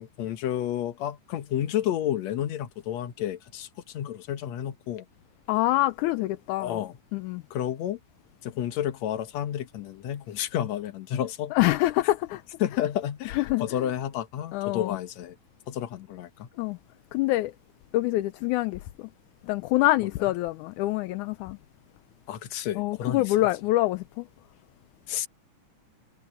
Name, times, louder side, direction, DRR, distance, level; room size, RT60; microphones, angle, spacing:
voice 1, 0.0-5.1 6.6-7.0 7.5-8.0 8.4-11.5 12.6-15.4 15.7-16.5 20.0-20.1 22.3-23.3 25.1-25.3, left 11 dB, 65° left, 2.4 m, -31 dB
voice 2, 5.5-6.8 7.1-7.4 11.5-12.4 13.3-13.7 14.5-15.0 16.6-16.8 17.1-17.5 17.9-19.1 19.4-21.6 22.8-24.3, left 17 dB, 80° left, 2.1 m, -25 dB
omnidirectional pair, 3.5 m